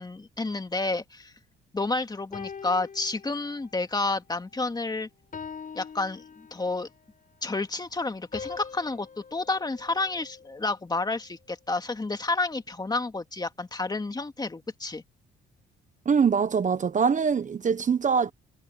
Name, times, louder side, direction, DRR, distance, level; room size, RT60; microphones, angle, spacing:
voice 1, 0.0-1.3 1.7-5.1 5.7-6.9 7.4-15.0, left 3 dB, 20° left, 2.2 m, -30 dB
sound 1, 2.3-3.9 4.3-4.6 5.3-7.0 8.3-10.7, left 6 dB, 40° left, 6.2 m, -43 dB
voice 2, 16.1-18.3, right 6 dB, 40° right, 1.1 m, -23 dB
cardioid pair, 90°, 20 cm